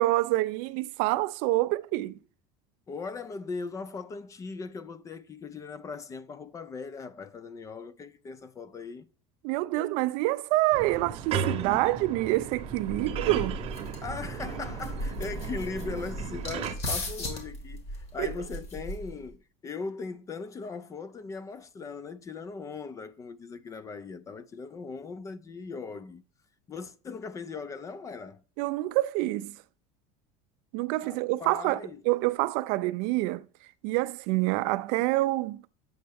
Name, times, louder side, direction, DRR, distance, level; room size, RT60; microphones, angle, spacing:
voice 1, 0.0-2.2 9.4-13.6 18.2-18.3 28.6-29.6 30.7-33.5 33.8-35.6, right 18 dB, 65° right, 0.4 m, -27 dB
voice 2, 2.9-9.1 14.0-26.2 26.7-28.4 31.0-32.0, left 4 dB, 20° left, 0.3 m, -39 dB
sound 1, 10.7-16.8, right 7 dB, 40° right, 0.9 m, -35 dB
sound 2, 12.6-19.3, equal, 45° left, 2.0 m, -37 dB
7.8 x 5.4 x 3.4 m
supercardioid pair, 140°, 16 cm